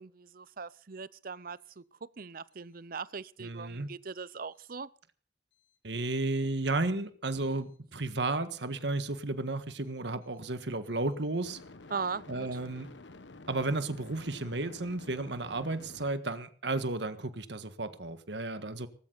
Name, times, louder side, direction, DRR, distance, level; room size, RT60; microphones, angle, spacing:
voice 1, 0.0-4.9 11.9-12.5, right 5 dB, 50° right, 0.7 m, -40 dB
voice 2, 3.4-3.9 5.8-11.6 12.3-12.9 13.5-18.9, right 2 dB, 70° right, 1.6 m, -33 dB
sound 1, 6.6-6.7 11.5-16.1, left 2 dB, 80° left, 1.2 m, -50 dB
19.0 x 16.0 x 4.1 m
head